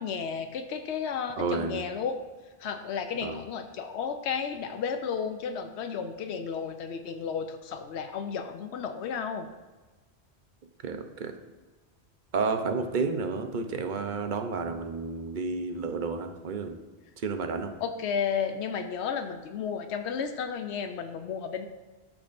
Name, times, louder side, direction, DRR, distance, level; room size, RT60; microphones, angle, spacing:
voice 1, 0.0-2.2 2.6-9.5 17.8-21.7, left 6 dB, 90° left, 7 dB, 0.9 m, -33 dB
voice 2, 1.4-1.8 3.2-3.4 10.8-11.3 12.3-16.8 17.2-17.8, right 4 dB, 50° right, 6 dB, 0.9 m, -31 dB
12.5 x 5.9 x 2.6 m, 1.2 s
omnidirectional pair, 1.1 m